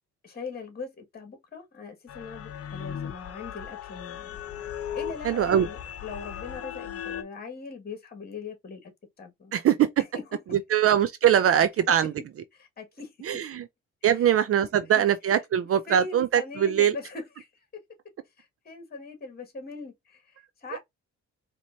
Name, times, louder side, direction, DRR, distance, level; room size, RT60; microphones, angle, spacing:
voice 1, 0.2-4.4 4.9-8.9 9.2-9.6 10.1-10.2 12.5-13.4 14.2-14.3 14.6-15.0 15.9-17.6 18.4-20.8, left 4 dB, 30° left, 1.7 m, -41 dB
sound 1, 2.1-7.2, left 9 dB, 50° left, 0.7 m, -37 dB
voice 2, 5.2-5.7 9.5-10.0 10.5-12.1 13.2-13.7 14.0-17.0, right 9 dB, 50° right, 0.5 m, -22 dB
4.3 x 3.0 x 2.6 m
cardioid pair, 90°, 30 cm